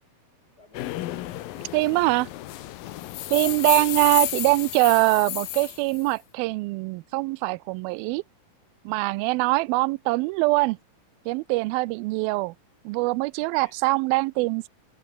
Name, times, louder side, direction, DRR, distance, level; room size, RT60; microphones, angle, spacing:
voice 1, 0.6-2.1 3.3-3.9 13.4-13.7, left 3 dB, 30° left, 3.1 m, -50 dB
sound 1, 0.7-6.1, left 15 dB, 75° left, 2.7 m, -32 dB
voice 2, 1.7-2.3 3.3-8.2 8.9-10.8 11.3-12.5 12.9-14.7, right 23 dB, 85° right, 2.3 m, -23 dB
omnidirectional pair, 4.3 m